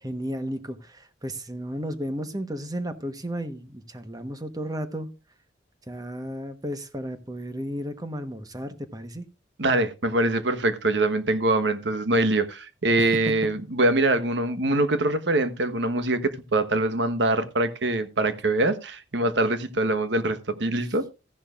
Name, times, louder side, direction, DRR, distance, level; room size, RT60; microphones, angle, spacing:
voice 1, 0.0-5.1 5.9-9.3 13.0-13.1, equal, 20° right, 1.1 m, -33 dB
voice 2, 9.6-21.1, right 2 dB, 80° right, 1.2 m, -24 dB
14.5 x 11.0 x 2.4 m
head